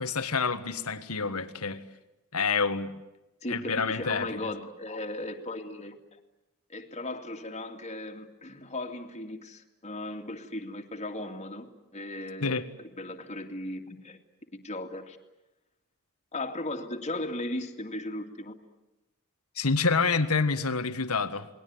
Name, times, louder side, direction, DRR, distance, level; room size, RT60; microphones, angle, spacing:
voice 1, 0.0-1.8 2.3-2.9 3.5-4.3 12.4-12.6 19.6-21.5, left 4 dB, 80° left, 1.7 m, -27 dB
voice 2, 3.4-6.0 6.7-11.7 11.9-14.2 14.6-15.2 16.3-18.5, left 1 dB, 30° left, 2.4 m, -37 dB
28.5 x 20.5 x 9.6 m
head